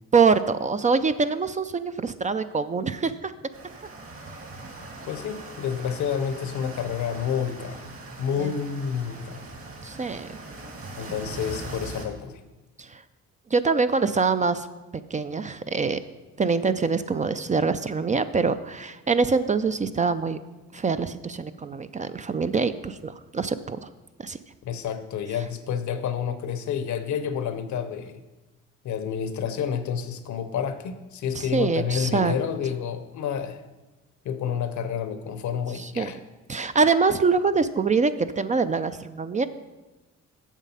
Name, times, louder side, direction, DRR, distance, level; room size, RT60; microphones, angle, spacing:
voice 1, 0.1-3.3 8.4-8.5 9.8-10.3 12.8-13.0 13.5-14.7 15.1-16.0 16.4-20.4 20.7-23.9 24.2-24.4 31.5-32.4 35.7-36.1 36.5-39.5, right 4 dB, 25° right, 11 dB, 0.4 m, -24 dB
sound 1, 3.5-12.0, right 2 dB, 45° right, 2.1 m, -41 dB
voice 2, 5.1-7.8 8.2-9.4 11.0-12.4 24.6-28.2 28.8-33.6 34.2-36.2, left 7 dB, 70° left, 10 dB, 0.9 m, -29 dB
7.3 x 7.3 x 5.5 m, 1.1 s
cardioid pair, 90°, 30 cm